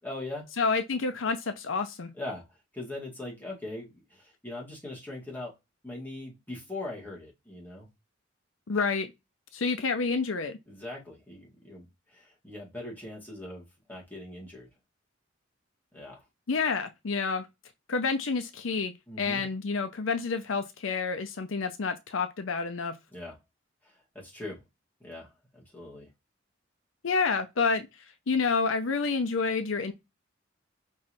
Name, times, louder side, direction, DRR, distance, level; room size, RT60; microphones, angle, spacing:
voice 1, 0.0-0.5 2.2-2.4 2.7-5.5 5.8-7.9 10.7-14.7 15.9-16.2 19.1-19.4 23.1-23.4 24.1-24.6 25.0-26.1, left 2 dB, 10° left, 1.9 m, -41 dB
voice 2, 0.6-2.1 8.7-9.1 9.5-10.6 16.5-17.5 17.9-22.9 27.0-27.9 28.3-29.9, left 4 dB, 75° left, 0.6 m, -29 dB
5.4 x 3.1 x 2.7 m
head